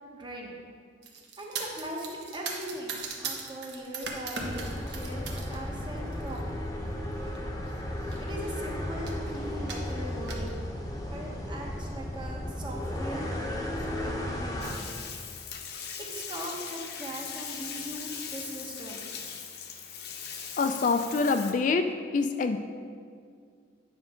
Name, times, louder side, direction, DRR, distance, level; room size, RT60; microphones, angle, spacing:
voice 1, 0.1-0.5 1.4-6.4 8.2-10.5 11.1-14.9 16.0-19.1, right 1 dB, 25° right, -1 dB, 1.1 m, -40 dB
sound 1, 1.0-5.6 6.0-6.4 7.2-7.4 7.7-7.8 8.0-8.6 9.1-9.2 9.7-10.5, right 4 dB, 65° right, 1.0 m, -38 dB
sound 2, 4.4-14.7, left 1 dB, 20° left, 0.8 m, -34 dB
Bathtub (filling or washing), 14.6-21.5, left 7 dB, 60° left, 0.7 m, -40 dB
voice 2, 20.6-21.9 22.1-22.6, left 4 dB, 45° left, 7 dB, 0.3 m, -25 dB
9.6 x 6.1 x 3.7 m, 2.2 s
head